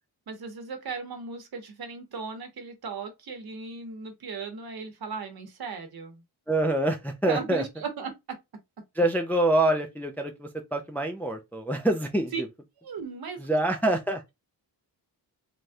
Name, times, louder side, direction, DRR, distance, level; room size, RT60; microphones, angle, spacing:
voice 1, 0.3-6.2 7.2-8.4 12.3-12.4 12.8-13.4, right 5 dB, 60° right, 1.0 m, -37 dB
voice 2, 6.5-7.6 9.0-12.3 13.4-14.2, right 1 dB, 5° left, 0.4 m, -26 dB
3.3 x 2.3 x 2.7 m
cardioid pair, 90°, 42 cm